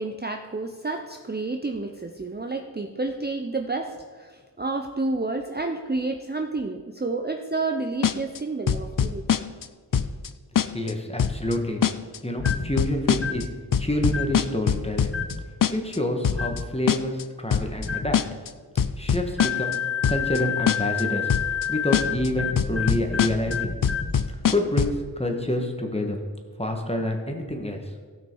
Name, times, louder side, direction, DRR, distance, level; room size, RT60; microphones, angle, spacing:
voice 1, 0.0-9.3, right 3 dB, 25° right, 4 dB, 0.6 m, -30 dB
sound 1, 8.0-8.4 8.7-9.7 9.9-10.3 10.6-10.9 11.2-11.5 11.8-12.2 12.5-13.4 13.7-15.3 15.6-16.0 16.2-16.6 16.9-17.2 17.5-17.9 18.1-18.5 18.8-19.8 20.0-20.4 20.7-21.0 21.3-21.7 21.9-22.3 22.6-23.5 23.8-25.0, left 8 dB, 50° left, 0.5 m, -23 dB
voice 2, 10.6-11.8 12.2-13.5 13.8-15.1 15.7-18.2 19.0-19.8 20.1-21.3 21.7-23.8 24.5-26.2 26.6-27.8, left 1 dB, 15° left, 3 dB, 1.5 m, -27 dB
sound 2, 12.4-12.7 13.1-13.5 14.1-14.4 15.1-15.5 16.3-16.7 17.8-18.2 19.4-24.2, left 7 dB, 35° left, 1.0 m, -29 dB
16.5 x 6.0 x 4.7 m, 1.5 s
wide cardioid pair, 70°, 41 cm